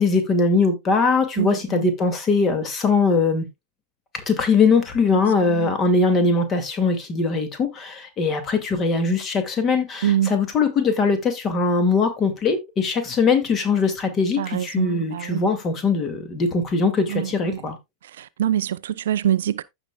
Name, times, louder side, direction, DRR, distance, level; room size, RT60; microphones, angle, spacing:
voice 1, 0.0-3.5 4.1-17.8, left 4 dB, 25° left, 2.2 m, -21 dB
voice 2, 1.4-1.9 5.5-5.7 10.0-10.3 14.4-15.4 17.1-17.6 18.2-19.6, right 11 dB, 60° right, 0.4 m, -24 dB
15.0 x 5.0 x 2.3 m
figure-of-eight pair, 90°, 0 cm